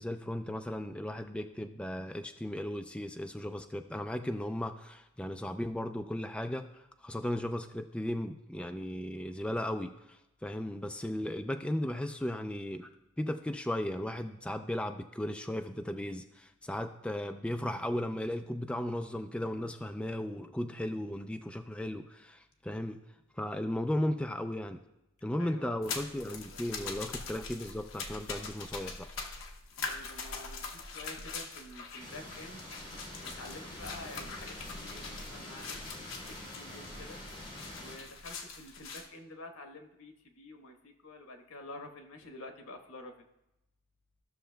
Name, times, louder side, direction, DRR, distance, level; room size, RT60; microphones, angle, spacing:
voice 1, 0.0-12.9 13.2-23.0 23.4-24.8 25.2-29.1, left 1 dB, 5° left, 6 dB, 0.3 m, -36 dB
voice 2, 25.4-25.8 26.3-26.9 29.8-32.6 33.2-36.1 36.4-37.2 37.8-43.1, left 2 dB, 85° left, 5 dB, 1.2 m, -49 dB
sound 1, 25.8-39.1, left 4 dB, 60° left, 1.0 m, -43 dB
sound 2, 32.0-38.0, left 1 dB, 25° left, 2.4 m, -46 dB
15.0 x 6.3 x 2.2 m, 0.90 s
head